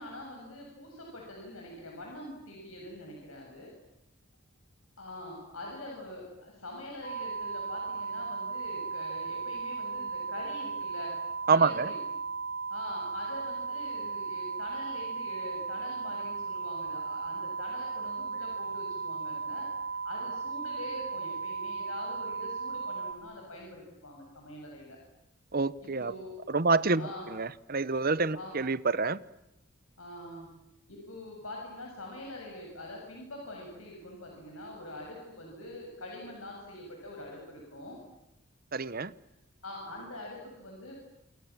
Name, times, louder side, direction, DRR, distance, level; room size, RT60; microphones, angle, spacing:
voice 1, 0.0-3.7 5.0-11.1 11.5-12.0 12.7-25.0 25.8-26.3 27.0-27.3 28.3-28.6 30.0-30.5 30.9-38.0 39.6-41.0, left 1 dB, 85° left, 7.7 m, -44 dB
sound 1, 7.0-23.1, right 4 dB, 40° left, 4.5 m, -36 dB
voice 2, 11.5-11.9 25.5-26.1 26.5-29.2 38.7-39.1, right 4 dB, 45° right, 1.0 m, -27 dB
28.5 x 28.0 x 7.5 m
head